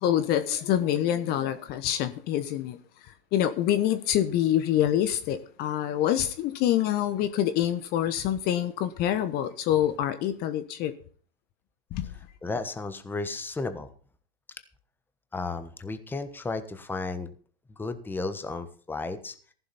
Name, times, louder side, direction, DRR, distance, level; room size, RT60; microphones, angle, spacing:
voice 1, 0.0-2.8 3.3-10.9 11.9-12.1, left 11 dB, 30° left, 1.1 m, -26 dB
voice 2, 12.4-13.9 15.3-17.3 17.8-19.3, left 3 dB, 5° left, 1.2 m, -33 dB
14.5 x 11.5 x 4.2 m
hypercardioid pair, 115°, 30 cm